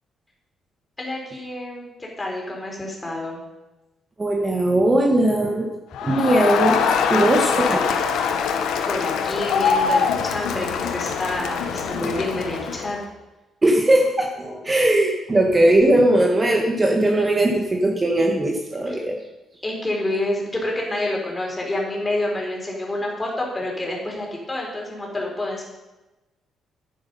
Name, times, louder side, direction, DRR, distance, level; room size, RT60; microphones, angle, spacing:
voice 1, 1.0-3.4 8.9-13.0 18.9-19.0 19.6-25.6, left 1 dB, 20° left, -2 dB, 4.2 m, -28 dB
voice 2, 4.2-5.7 6.0-6.8 7.1-7.8 13.6-19.2, right 1 dB, 25° right, 1 dB, 1.5 m, -19 dB
Crowd, 5.9-13.0, left 6 dB, 85° left, 1.1 m, -23 dB
10.0 x 9.9 x 5.5 m, 1.1 s
cardioid pair, 90°, 0 cm